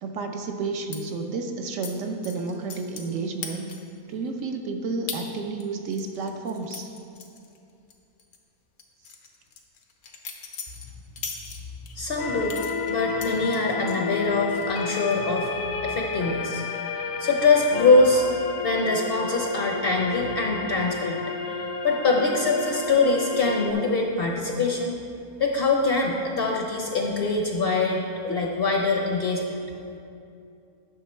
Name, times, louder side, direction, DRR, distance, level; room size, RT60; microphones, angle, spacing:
voice 1, 0.0-3.7 4.1-6.9 15.7-15.8, right 3 dB, 65° right, 4 dB, 1.0 m, -31 dB
sound 1, 0.9-1.0 1.8-1.9 2.2-3.1 3.4-4.0 4.4-4.5 5.1-5.2 5.6-7.9 8.2-8.4 8.8-11.9 12.5-14.0 14.4-14.8 15.1-15.5, left 6 dB, 90° left, 1.3 m, -39 dB
voice 2, 12.0-12.6 12.9-15.5 15.8-16.6 17.2-18.2 18.6-21.6 21.8-25.0 25.4-29.6, left 3 dB, 55° left, 1 dB, 0.7 m, -23 dB
sound 2, 12.2-23.7, left 4 dB, 70° left, 1.0 m, -31 dB
9.0 x 6.3 x 4.3 m, 2.6 s
omnidirectional pair, 1.5 m